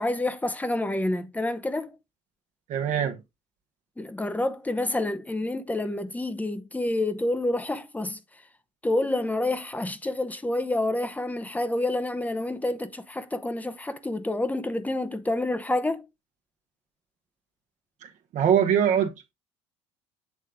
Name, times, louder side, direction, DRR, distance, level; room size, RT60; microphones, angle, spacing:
voice 1, 0.0-2.0 4.0-8.2 8.8-16.0, left 2 dB, 10° left, 0.8 m, -28 dB
voice 2, 2.7-3.2 18.0-19.1, right 9 dB, 55° right, 1.0 m, -23 dB
8.2 x 3.2 x 3.7 m
hypercardioid pair, 75°, 15 cm